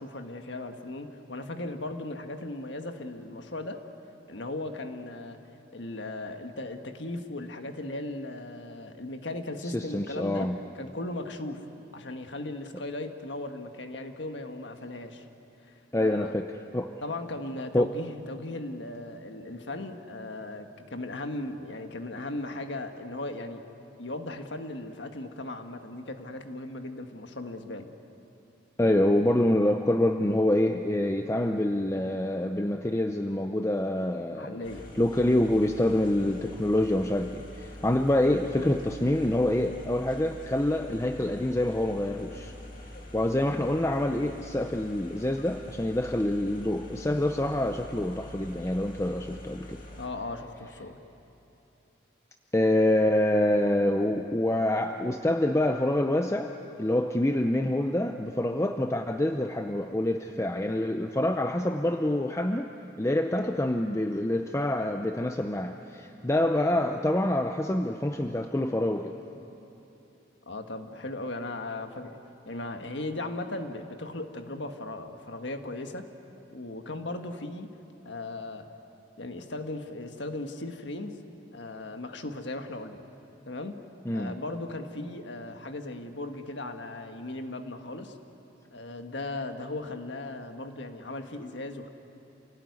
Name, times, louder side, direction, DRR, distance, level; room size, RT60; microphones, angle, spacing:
voice 1, 0.0-3.8 4.3-5.4 5.7-10.5 10.7-11.6 11.9-15.2 15.6-16.3 17.0-23.6 24.0-27.9 34.3-34.9 50.0-51.0 70.5-72.2 72.5-76.1 76.5-77.7 78.0-78.7 79.2-81.2 81.5-83.0 83.5-83.8 84.1-88.2 88.7-91.9, left 2 dB, 65° left, 6 dB, 1.6 m, -37 dB
voice 2, 9.6-10.6 15.9-16.5 16.7-16.9 17.7-17.9 28.8-34.6 34.9-42.5 43.1-49.8 52.5-56.5 56.8-62.7 63.0-69.1 84.1-84.4, left 1 dB, 15° left, 5 dB, 0.6 m, -26 dB
sound 1, 34.6-50.1, left 1 dB, 45° left, 2.7 m, -45 dB
28.0 x 17.5 x 9.6 m, 3.0 s
head